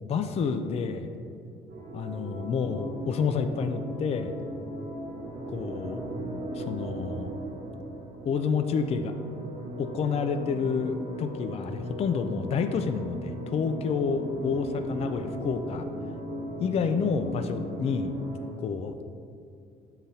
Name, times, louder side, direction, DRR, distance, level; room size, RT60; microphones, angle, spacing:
voice 1, 0.0-1.1 1.9-4.3 5.5-6.0 6.5-7.3 8.3-9.1 9.8-15.9 16.6-18.1 18.6-18.9, left 5 dB, 40° left, 8 dB, 0.4 m, -29 dB
sound 1, 1.7-18.5, right 1 dB, 40° right, 1.4 m, -38 dB
7.1 x 3.9 x 4.1 m, 2.4 s
cardioid pair, 110°, 17 cm